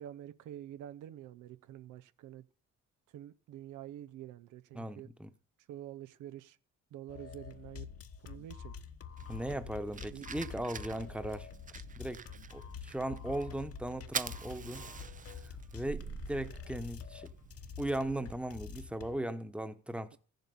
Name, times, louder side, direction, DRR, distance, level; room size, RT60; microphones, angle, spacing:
voice 1, 0.0-2.4 3.1-5.1 5.7-6.6 6.9-7.9 8.2-8.8 10.1-10.3, right 12 dB, 85° right, 0.8 m, -47 dB
voice 2, 4.7-5.3 9.3-11.5 12.0-12.2 12.5-14.8 15.4-17.3 17.8-20.2, right 1 dB, 5° right, 1.1 m, -38 dB
sound 1, 7.1-19.2, left 7 dB, 50° left, 1.2 m, -47 dB
Fire, 9.2-18.9, right 6 dB, 25° right, 0.5 m, -46 dB
14.5 x 7.8 x 7.0 m
cardioid pair, 90°, 30 cm